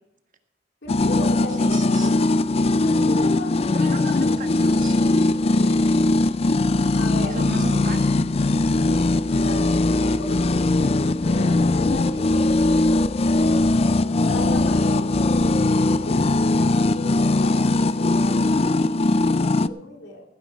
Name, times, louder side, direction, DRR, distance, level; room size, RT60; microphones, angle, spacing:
voice 1, 0.8-2.2 2.7-3.6 5.2-6.1 7.0-7.3 8.6-9.1 9.4-13.5 14.2-20.2, left 2 dB, 75° left, 0 dB, 3.5 m, -36 dB
sound 1, 0.8-12.8, right 1 dB, 75° right, 3.1 m, -49 dB
sound 2, 0.9-19.7, left 2 dB, 35° left, 0.4 m, -20 dB
voice 2, 1.6-2.1 3.7-5.0 7.1-8.1, right 3 dB, 50° right, 5 dB, 1.6 m, -34 dB
17.0 x 10.0 x 4.7 m, 0.91 s
head